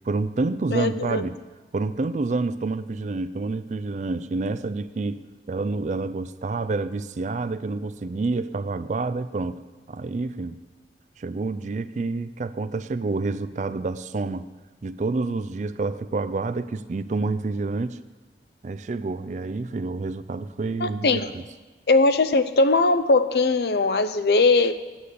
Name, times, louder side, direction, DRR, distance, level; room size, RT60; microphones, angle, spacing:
voice 1, 0.0-1.4 1.7-5.2 5.5-9.6 9.9-10.6 11.2-14.5 14.8-18.0 18.6-21.4, right 3 dB, 40° right, 14 dB, 0.4 m, -28 dB
voice 2, 0.7-1.2 20.8-21.3 21.9-24.7, left 3 dB, 65° left, 11 dB, 0.6 m, -20 dB
9.7 x 8.3 x 6.8 m, 1.3 s
head